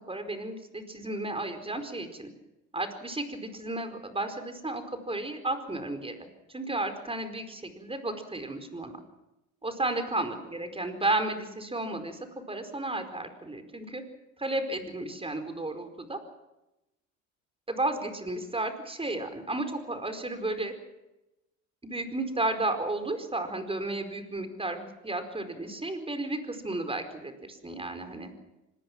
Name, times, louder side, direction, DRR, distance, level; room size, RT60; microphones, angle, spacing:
voice 1, 0.1-2.3 2.7-6.2 6.5-9.0 9.6-14.0 14.4-16.2 17.7-20.7 21.8-28.3, right 2 dB, 15° right, 8 dB, 4.8 m, -33 dB
25.5 x 20.0 x 6.2 m, 0.95 s
hypercardioid pair, 70°, 38 cm